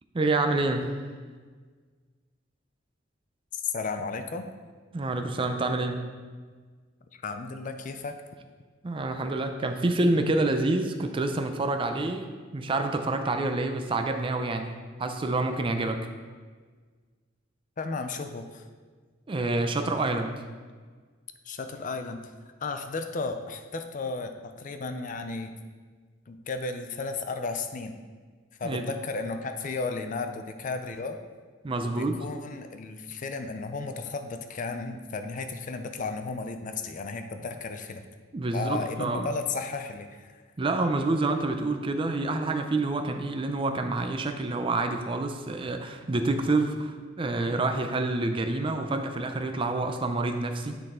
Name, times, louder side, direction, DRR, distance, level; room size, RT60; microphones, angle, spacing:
voice 1, 0.1-0.9 4.9-6.0 8.8-16.1 19.3-20.4 28.6-28.8 31.6-32.3 38.3-39.3 40.6-50.7, right 2 dB, 25° right, 6 dB, 0.4 m, -28 dB
voice 2, 3.5-4.4 7.2-8.1 17.8-18.6 21.5-22.2 22.6-25.5 26.3-28.0 28.6-31.2 31.8-38.1 38.5-40.3, left 4 dB, 40° left, 7 dB, 0.5 m, -34 dB
9.1 x 4.0 x 3.7 m, 1.5 s
head